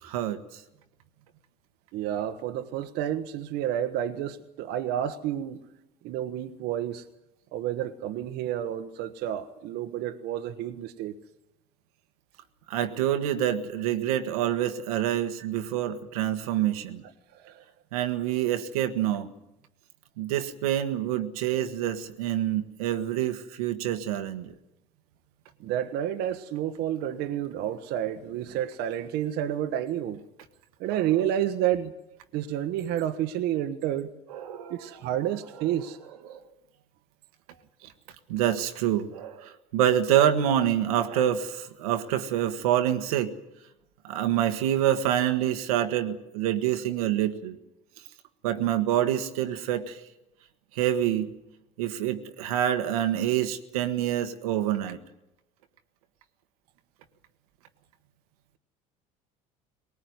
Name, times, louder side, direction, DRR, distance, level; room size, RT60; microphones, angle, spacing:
voice 1, 0.0-0.6 12.7-17.0 17.9-19.3 20.2-24.5 30.8-31.3 34.3-36.4 37.8-37.9 38.3-43.3 44.0-47.6 48.4-50.0 50.7-51.3 51.8-55.0, right 11 dB, 90° right, 7 dB, 1.5 m, -27 dB
voice 2, 1.9-5.7 6.0-7.1 7.5-11.1 17.3-17.6 25.6-30.2 30.8-31.9 32.3-34.1 34.7-36.0, right 11 dB, 70° right, 7 dB, 1.2 m, -30 dB
20.0 x 19.0 x 9.5 m, 0.92 s
supercardioid pair, 80°, 18 cm